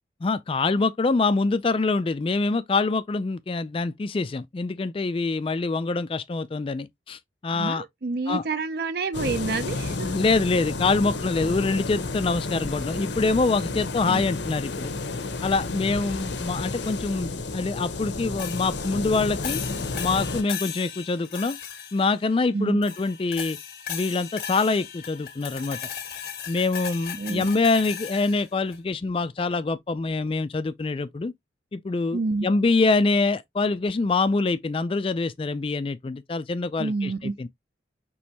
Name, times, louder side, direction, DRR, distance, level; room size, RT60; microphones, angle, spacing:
voice 1, 0.2-7.8 8.3-8.4 9.9-14.9 15.4-19.6 19.9-21.6 21.9-23.6 23.9-25.8 26.5-31.3 31.7-37.5, left 3 dB, 30° left, 0.3 m, -25 dB
voice 2, 7.5-10.2 14.1-14.2 22.5-22.8 27.2-27.6 32.1-32.5 36.8-37.4, right 3 dB, 55° right, 0.5 m, -28 dB
sound 1, 9.1-20.4, left 3 dB, 70° left, 0.9 m, -31 dB
sound 2, 18.4-22.4 22.8-28.8, left 8 dB, 50° left, 1.6 m, -37 dB
6.2 x 3.1 x 2.8 m
head